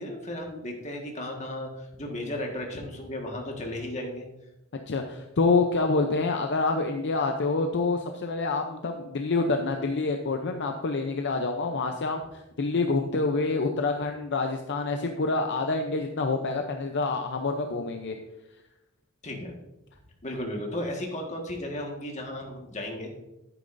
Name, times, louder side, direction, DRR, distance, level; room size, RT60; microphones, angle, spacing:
voice 1, 0.0-4.3 19.2-19.5 20.2-23.1, left 1 dB, 35° left, 1 dB, 1.6 m, -35 dB
voice 2, 4.9-18.2, left 3 dB, 55° left, 4 dB, 0.6 m, -27 dB
10.5 x 9.1 x 2.6 m, 0.96 s
head